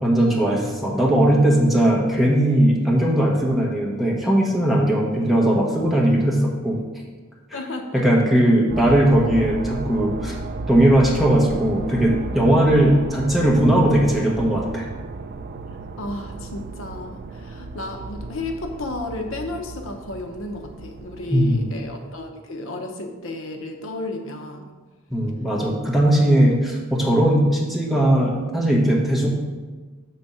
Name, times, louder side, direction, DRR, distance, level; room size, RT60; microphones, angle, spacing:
voice 1, 0.0-6.8 7.9-10.4 10.7-14.8 21.3-21.6 25.1-29.3, right 1 dB, ahead, -3 dB, 1.0 m, -18 dB
voice 2, 7.5-8.1 16.0-24.7, left 2 dB, 65° left, 4 dB, 0.7 m, -32 dB
sound 1, 8.7-22.3, right 3 dB, 45° right, 0.3 m, -34 dB
7.2 x 3.5 x 5.4 m, 1.3 s
head